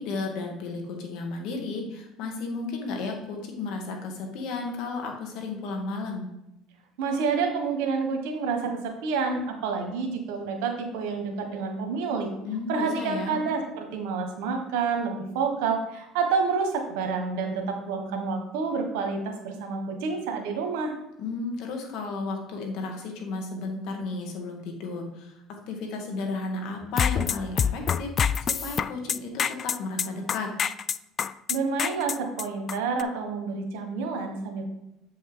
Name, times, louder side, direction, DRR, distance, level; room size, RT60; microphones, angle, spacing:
voice 1, 0.0-6.3 12.4-13.5 21.2-25.4 25.7-28.1 28.5-30.5, left 3 dB, 70° left, 2 dB, 1.9 m, -33 dB
voice 2, 7.0-12.3 12.7-21.0 31.5-34.6, right 5 dB, 85° right, 4 dB, 1.3 m, -28 dB
sound 1, 26.8-33.0, left 7 dB, 40° left, 0.3 m, -26 dB
8.1 x 5.4 x 3.9 m, 0.87 s
supercardioid pair, 100°, 0 cm